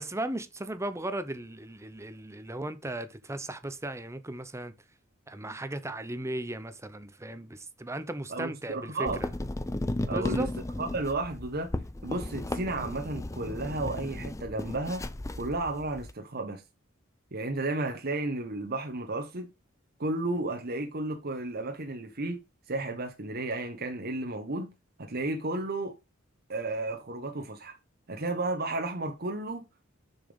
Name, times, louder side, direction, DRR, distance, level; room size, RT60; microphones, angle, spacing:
voice 1, 0.0-4.7 5.3-9.3 10.1-10.5, right 1 dB, 15° right, 0.8 m, -36 dB
voice 2, 8.3-9.2 10.1-10.5 10.8-11.7 12.0-15.1 15.4-16.6 17.3-19.5 20.0-22.4 22.7-24.7 25.0-26.0 26.5-27.8 28.1-29.6, right 2 dB, 50° right, 1.2 m, -33 dB
sound 1, 9.1-16.1, left 1 dB, 15° left, 0.6 m, -35 dB
6.9 x 6.0 x 5.3 m
head